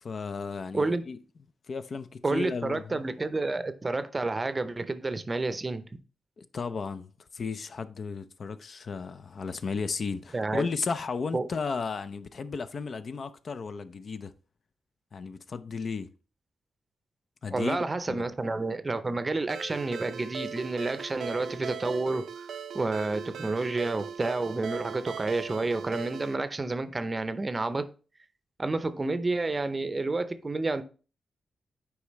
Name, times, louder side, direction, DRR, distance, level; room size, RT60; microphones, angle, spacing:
voice 1, 0.0-1.2 1.7-3.0 6.4-14.3 15.1-16.1 17.4-17.8 18.1-18.3, left 4 dB, 55° left, 0.5 m, -34 dB
voice 2, 2.2-5.8 10.3-10.7 11.3-11.5 17.5-22.3 22.7-27.9 28.6-30.8, right 3 dB, 30° right, 0.6 m, -30 dB
Ringtone, 19.5-26.4, right 7 dB, 90° right, 0.5 m, -39 dB
8.4 x 4.8 x 3.1 m
cardioid pair, 95°, 0 cm